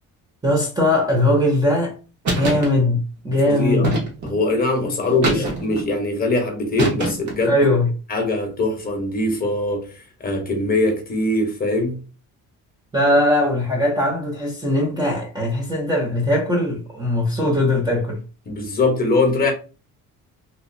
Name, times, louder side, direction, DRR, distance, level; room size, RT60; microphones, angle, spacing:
voice 1, 0.4-2.0 2.3-3.9 5.1-5.5 7.4-7.9 12.9-18.2, left 1 dB, 10° right, 0.6 m, -20 dB
sound 1, 2.3-2.7 3.8-4.4 5.2-5.8 6.8-7.4, right 2 dB, 55° right, 1.2 m, -23 dB
voice 2, 3.5-3.9 4.2-7.6 8.1-12.0 18.5-19.5, left 2 dB, 25° left, 0.8 m, -22 dB
2.9 x 2.6 x 2.6 m
cardioid pair, 155°, 35 cm